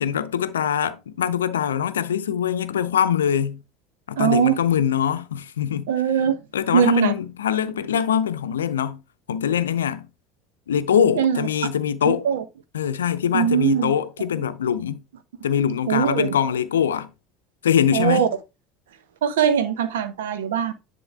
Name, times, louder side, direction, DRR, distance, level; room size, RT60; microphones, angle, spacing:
voice 1, 0.0-3.6 4.1-5.9 6.5-9.0 9.3-10.1 10.7-12.3 12.7-15.0 15.4-17.1 17.6-18.3, left 8 dB, 75° left, 0.6 m, -23 dB
voice 2, 4.2-4.6 5.9-6.4 6.7-7.1 11.2-11.5 12.0-12.4 13.3-13.9 15.9-16.4 17.9-18.3 19.2-20.7, right 8 dB, 70° right, 0.9 m, -21 dB
10.5 x 3.7 x 3.4 m
figure-of-eight pair, 70°, 0 cm